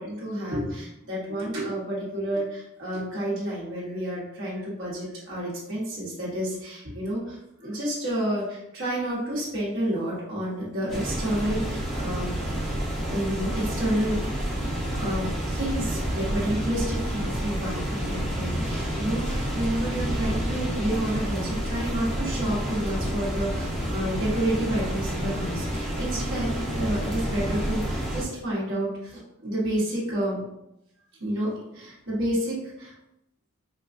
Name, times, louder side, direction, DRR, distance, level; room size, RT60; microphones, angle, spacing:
voice 1, 0.0-12.8 13.0-14.3 14.9-30.5 31.2-32.9, right 1 dB, 60° right, -7 dB, 1.2 m, -30 dB
sound 1, 10.9-28.2, equal, ahead, 1.0 m, -29 dB
4.3 x 2.3 x 2.5 m, 0.84 s
head